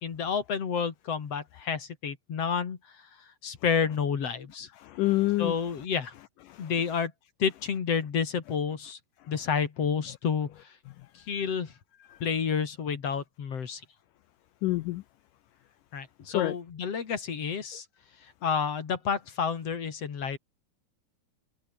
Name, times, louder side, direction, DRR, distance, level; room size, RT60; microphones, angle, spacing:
voice 1, 0.0-2.8 3.4-4.7 5.4-6.1 6.6-7.1 7.4-9.0 9.3-10.5 11.3-11.7 12.2-13.8 15.9-17.8 18.4-20.4, left 6 dB, 45° left, 2.9 m, -30 dB
voice 2, 4.8-5.6 6.5-6.7 12.1-12.2 14.6-15.0 16.3-16.6, left 18 dB, 85° left, 1.9 m, -27 dB
omnidirectional pair, 4.4 m